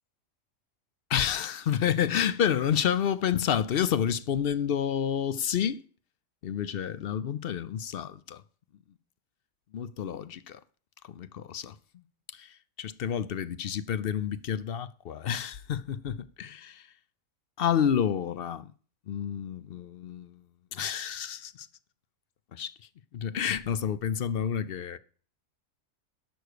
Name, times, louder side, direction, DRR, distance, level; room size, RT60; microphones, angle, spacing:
voice 1, 1.1-5.8 6.4-8.4 9.7-10.6 11.1-11.8 12.3-16.9 17.6-18.7 19.1-20.4 20.7-21.7 22.5-22.7 23.1-25.0, left 8 dB, 60° left, 0.7 m, -29 dB
11.5 x 6.4 x 6.6 m
omnidirectional pair, 1.4 m